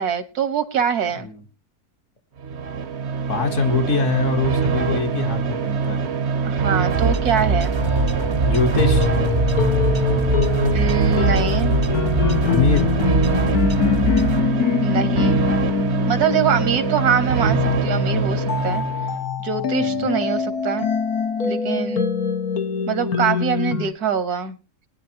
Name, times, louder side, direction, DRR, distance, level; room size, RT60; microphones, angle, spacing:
voice 1, 0.0-1.3 6.4-7.8 10.7-11.8 14.8-15.4 16.1-18.8 19.4-20.9 21.4-22.1 22.9-24.6, right 7 dB, 80° right, 12 dB, 1.8 m, -23 dB
sound 1, 2.4-19.2, right 5 dB, 55° right, 0.9 m, -24 dB
voice 2, 3.3-6.0 8.4-9.1 12.4-12.9 19.8-20.1, left 5 dB, 55° left, 5 dB, 1.7 m, -23 dB
sound 2, 6.9-14.4, right 2 dB, 30° right, 0.5 m, -24 dB
sound 3, 7.8-23.9, left 6 dB, 75° left, 1.8 m, -24 dB
20.5 x 10.0 x 2.9 m, 0.30 s
omnidirectional pair, 1.6 m